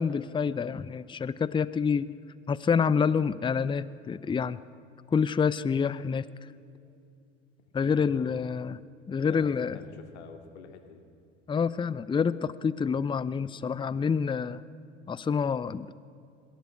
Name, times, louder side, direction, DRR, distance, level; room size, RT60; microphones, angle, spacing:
voice 1, 0.0-2.1 2.5-4.6 5.1-6.2 7.7-8.8 9.1-9.8 11.5-14.6 15.1-15.9, left 6 dB, 15° left, 18 dB, 0.6 m, -27 dB
voice 2, 7.8-8.5 9.2-11.0, left 5 dB, 75° left, 6 dB, 2.5 m, -47 dB
21.0 x 16.0 x 8.4 m, 2.5 s
hypercardioid pair, 75°, 34 cm